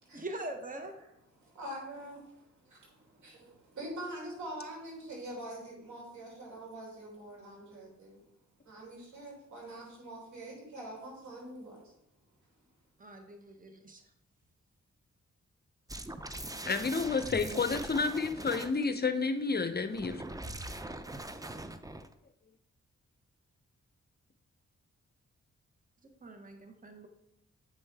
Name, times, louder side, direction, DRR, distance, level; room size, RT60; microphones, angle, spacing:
voice 1, 0.1-1.0 13.0-14.0 26.2-27.1, right 1 dB, 30° right, 4 dB, 1.2 m, -43 dB
voice 2, 1.4-8.2 8.6-11.9, right 1 dB, 85° right, -3 dB, 2.9 m, -45 dB
sound 1, 15.9-18.9 19.9-22.1, right 1 dB, 10° right, 0.5 m, -42 dB
voice 3, 16.7-20.2, left 4 dB, 35° left, 9 dB, 0.6 m, -30 dB
8.0 x 5.3 x 3.5 m, 0.80 s
cardioid pair, 55°, 29 cm